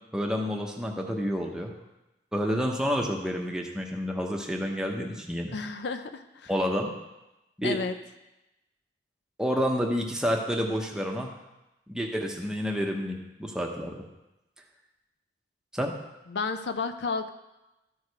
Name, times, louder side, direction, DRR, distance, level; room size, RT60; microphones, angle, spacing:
voice 1, 0.1-1.7 2.3-5.6 6.5-6.9 7.6-7.8 9.4-11.3 11.9-14.0 15.7-15.9, equal, 5° right, 1 dB, 1.0 m, -29 dB
voice 2, 5.5-6.5 7.6-8.0 16.3-17.3, left 4 dB, 65° left, 9 dB, 0.5 m, -32 dB
12.5 x 4.8 x 4.8 m, 0.96 s
head